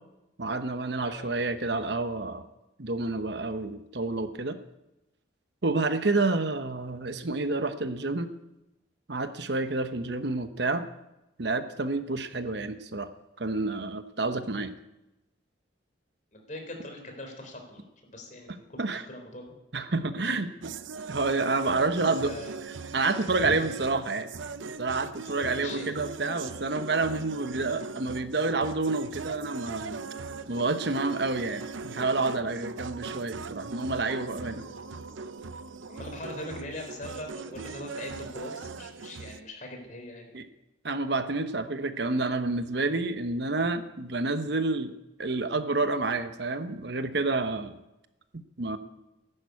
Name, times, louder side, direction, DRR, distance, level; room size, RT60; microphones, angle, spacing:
voice 1, 0.4-2.5 2.8-4.6 5.6-8.3 9.1-10.8 11.4-13.1 13.4-14.7 18.8-19.0 19.7-20.7 21.1-22.3 22.9-24.3 24.8-30.0 30.5-34.6 40.3-40.4 40.8-44.9 45.2-47.8 48.3-48.8, right 3 dB, 60° right, 10 dB, 1.0 m, -29 dB
voice 2, 16.3-19.5 20.2-20.4 22.2-22.5 23.4-23.5 25.2-25.9 35.9-40.4, left 1 dB, 40° left, 3 dB, 3.8 m, -41 dB
sound 1, 20.6-39.4, right 4 dB, 90° right, 0.7 m, -40 dB
15.0 x 11.0 x 8.4 m, 0.95 s
head